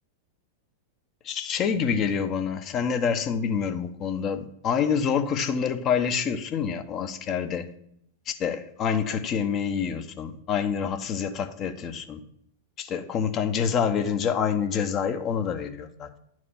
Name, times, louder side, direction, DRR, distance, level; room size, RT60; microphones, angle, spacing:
voice 1, 1.2-7.7 8.3-12.2 12.8-16.2, left 7 dB, 35° left, 1.0 m, -27 dB
11.0 x 4.7 x 5.7 m
hypercardioid pair, 100°, 0 cm